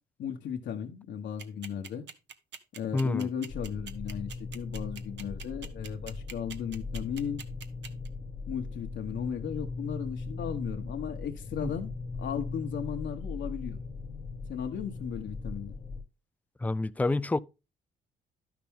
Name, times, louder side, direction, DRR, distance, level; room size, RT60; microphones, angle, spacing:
voice 1, 0.2-2.1 2.8-7.4 8.5-11.9 12.2-13.8 14.5-15.8, left 8 dB, 65° left, 1.1 m, -36 dB
sound 1, 1.4-8.1, right 7 dB, 65° right, 1.0 m, -43 dB
voice 2, 2.9-3.3 11.6-11.7 16.6-17.4, left 2 dB, 10° left, 0.4 m, -28 dB
sound 2, 3.5-16.0, left 3 dB, 30° left, 0.9 m, -39 dB
11.5 x 5.9 x 3.6 m
cardioid pair, 90°, 20 cm